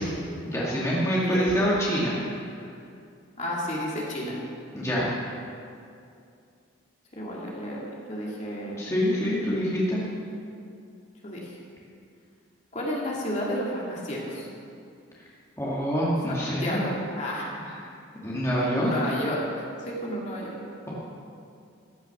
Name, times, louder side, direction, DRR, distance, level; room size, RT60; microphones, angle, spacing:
voice 1, 0.5-2.1 4.7-5.1 8.8-10.0 15.6-16.8 17.7-17.8 18.2-19.1, equal, 15° left, -7 dB, 2.2 m, -25 dB
voice 2, 3.4-4.4 7.1-7.8 8.1-8.8 11.2-11.4 12.7-14.5 16.3-17.6 18.8-20.6, equal, 35° left, -4 dB, 2.5 m, -32 dB
15.0 x 10.0 x 5.9 m, 2.4 s
head